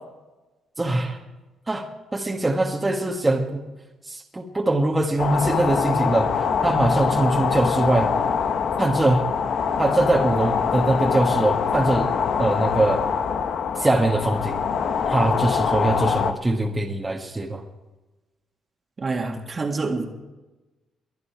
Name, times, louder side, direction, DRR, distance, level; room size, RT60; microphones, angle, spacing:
voice 1, 0.8-1.2 1.7-1.9 2.1-3.6 4.1-8.1 8.8-9.2 9.8-12.1 12.4-13.0 13.7-14.6 15.1-17.6, right 2 dB, 15° right, -1 dB, 1.6 m, -22 dB
sound 1, 5.2-16.3, left 6 dB, 65° left, 1.1 m, -24 dB
voice 2, 19.0-20.1, right 3 dB, 35° right, 3 dB, 1.9 m, -27 dB
23.0 x 9.5 x 4.7 m, 1.1 s
cardioid pair, 90°, 0 cm